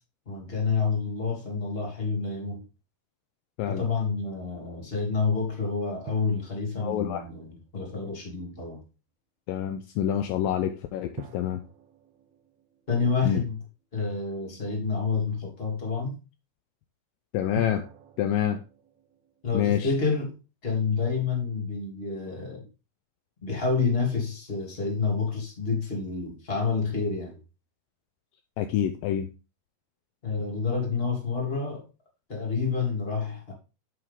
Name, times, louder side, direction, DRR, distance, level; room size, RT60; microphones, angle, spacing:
voice 1, 0.3-2.6 3.7-8.8 12.9-13.6 13.9-16.2 19.4-20.3 20.6-22.7 23.4-27.4 30.2-31.8 32.3-33.5, left 4 dB, 15° left, 2.5 m, -28 dB
sound 1, 6.1-8.3 11.2-14.1 17.6-19.4, right 7 dB, 80° right, 1.6 m, -47 dB
voice 2, 6.8-7.2 9.5-11.6 13.2-13.4 17.3-17.9 18.2-18.6 19.5-19.9 28.6-29.3, left 10 dB, 85° left, 2.1 m, -27 dB
8.3 x 7.7 x 3.7 m
omnidirectional pair, 4.6 m